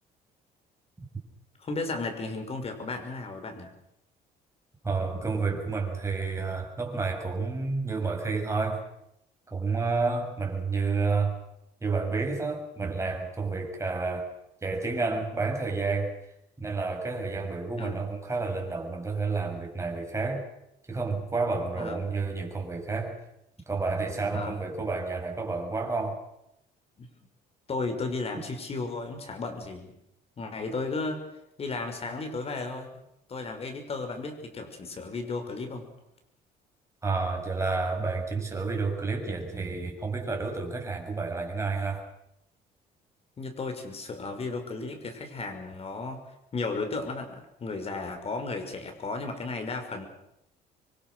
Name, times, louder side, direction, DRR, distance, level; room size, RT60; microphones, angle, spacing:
voice 1, 1.6-3.7 17.8-18.0 21.8-22.0 24.3-24.6 27.0-27.1 27.7-29.9 30.4-31.3 31.6-32.9 33.3-35.9 43.4-46.2 46.5-50.1, left 3 dB, 35° left, 6 dB, 6.2 m, -34 dB
voice 2, 4.8-8.8 9.5-11.4 11.8-14.3 14.6-16.1 16.6-20.5 20.9-23.2 23.7-26.2 37.0-42.0, right 4 dB, 15° right, 2 dB, 7.1 m, -30 dB
27.0 x 24.0 x 6.6 m, 0.79 s
cardioid pair, 110°, 17 cm